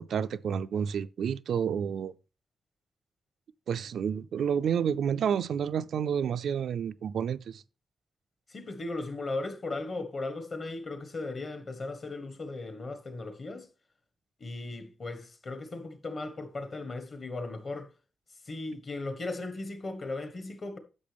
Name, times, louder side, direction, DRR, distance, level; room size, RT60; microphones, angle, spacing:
voice 1, 0.0-2.1 3.7-7.6, right 8 dB, 85° right, 0.4 m, -30 dB
voice 2, 8.5-13.7 14.4-17.9 18.4-20.8, left 2 dB, 45° left, 1.5 m, -37 dB
10.5 x 6.6 x 3.4 m
wide cardioid pair, 115°, 0 cm